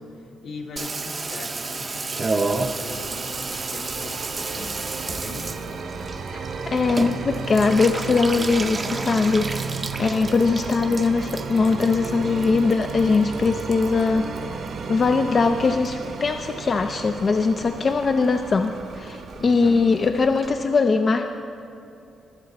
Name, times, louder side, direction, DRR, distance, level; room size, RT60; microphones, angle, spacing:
voice 1, 0.0-5.5 10.4-11.0 19.4-19.8, left 2 dB, 75° left, 0 dB, 1.7 m, -40 dB
Water tap faucet / Bathtub (filling or washing), 0.8-15.3 15.6-16.3 16.6-16.7 16.9-17.0 17.2-17.6 17.9-18.0 18.2-18.3 18.6-18.7 18.9-19.0 19.3-19.4 19.7-19.8 20.0-20.1 20.4-20.5, right 3 dB, 30° right, 0.6 m, -32 dB
sound 1, 2.4-20.6, right 5 dB, 85° right, 1.2 m, -44 dB
sound 2, 2.9-20.7, right 4 dB, 60° right, 0.9 m, -34 dB
voice 2, 6.3-9.5 10.0-14.3 14.9-21.3, left 4 dB, 35° left, 6 dB, 0.4 m, -21 dB
21.0 x 7.3 x 4.1 m, 2.7 s
cardioid pair, 125°, 0 cm